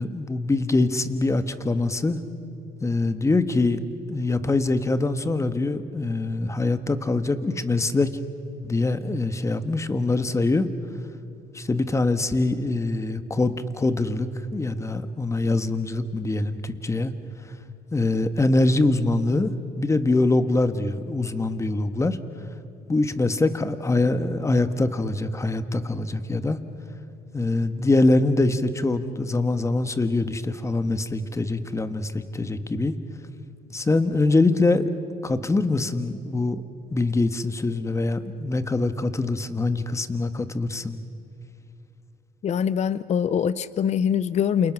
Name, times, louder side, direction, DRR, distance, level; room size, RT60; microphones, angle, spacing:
voice 1, 0.0-2.2 2.8-3.8 4.1-8.1 8.6-10.7 11.5-17.1 17.9-22.2 22.9-26.6 27.3-32.9 33.7-34.8 35.2-36.6 36.9-41.0, left 2 dB, 15° left, 10 dB, 1.5 m, -24 dB
voice 2, 42.4-44.7, left 8 dB, 40° left, 16 dB, 0.6 m, -23 dB
28.5 x 28.5 x 6.3 m, 2.8 s
cardioid pair, 110°, 17 cm